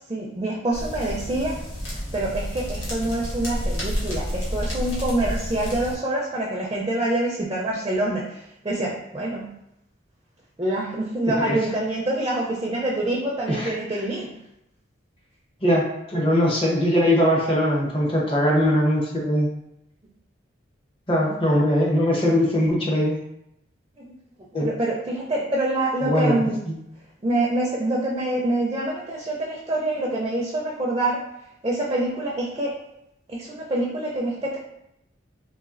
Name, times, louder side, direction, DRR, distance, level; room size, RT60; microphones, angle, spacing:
voice 1, 0.0-1.6 2.1-9.5 10.6-14.3 24.0-24.1 24.6-26.6 27.2-31.2 31.6-32.7 33.3-34.6, right 1 dB, 20° right, -3 dB, 0.4 m, -26 dB
sound 1, 0.7-6.0, equal, 75° left, 1.2 m, -30 dB
voice 2, 15.6-19.5 21.1-23.2 24.5-24.7 26.0-26.8, equal, 30° left, -2 dB, 0.7 m, -21 dB
4.0 x 2.7 x 2.4 m, 0.82 s
head